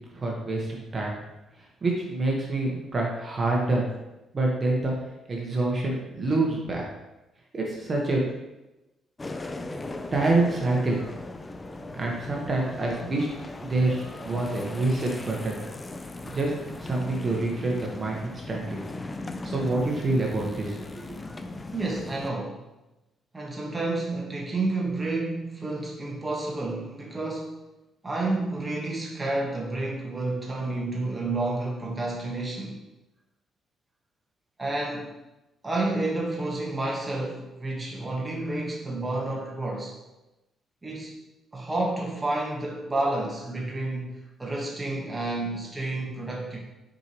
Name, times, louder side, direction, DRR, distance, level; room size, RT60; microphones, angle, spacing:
voice 1, 0.1-1.1 1.8-3.9 4.3-4.9 5.3-6.9 7.5-8.2 10.1-11.0 11.9-13.3 13.6-15.6 16.3-16.5 16.8-18.8 19.4-21.1, right 2 dB, 35° right, -2 dB, 1.2 m, -26 dB
sound 1, 9.2-22.3, left 2 dB, 25° left, 0.4 m, -38 dB
voice 2, 21.7-22.6 23.3-27.6 28.0-32.8 34.6-35.2 35.6-40.0 40.8-41.1 41.5-46.6, right 2 dB, 20° right, -2 dB, 1.3 m, -30 dB
6.7 x 4.6 x 3.0 m, 0.99 s
cardioid pair, 90°, 0 cm